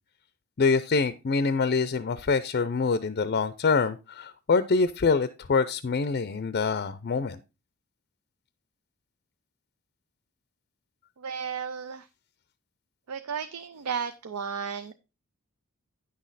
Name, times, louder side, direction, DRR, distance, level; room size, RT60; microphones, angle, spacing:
voice 1, 0.6-7.4, left 4 dB, 45° left, 14 dB, 0.5 m, -25 dB
voice 2, 11.2-12.1 13.1-14.9, right 6 dB, 90° right, 11 dB, 0.5 m, -34 dB
9.5 x 6.3 x 4.0 m, 0.28 s
head